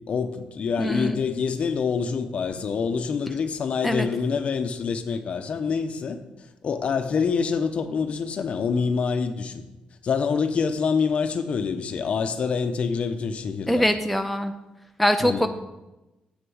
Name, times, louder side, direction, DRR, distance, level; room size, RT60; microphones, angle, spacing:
voice 1, 0.1-6.2 6.6-9.6 10.0-13.9 15.2-15.5, left 5 dB, 50° left, 8 dB, 0.8 m, -26 dB
voice 2, 0.8-1.2 3.8-4.1 13.7-14.5 15.0-15.5, equal, ahead, 6 dB, 0.4 m, -23 dB
8.1 x 6.6 x 6.3 m, 1.0 s
cardioid pair, 140°, 3 cm